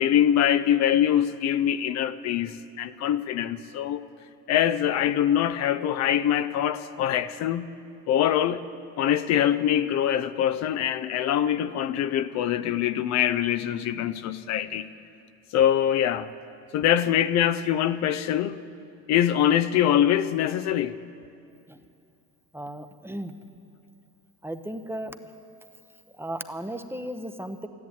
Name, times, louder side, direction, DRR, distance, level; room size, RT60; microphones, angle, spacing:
voice 1, 0.0-4.0 4.5-7.7 8.1-8.6 9.0-14.9 15.5-16.3 16.7-18.6 19.1-21.0, left 10 dB, 55° left, 0.6 m, -24 dB
voice 2, 22.5-23.3 24.4-25.2 26.2-27.7, right 1 dB, 5° right, 0.8 m, -35 dB
13.5 x 11.0 x 8.6 m
supercardioid pair, 90°, 32 cm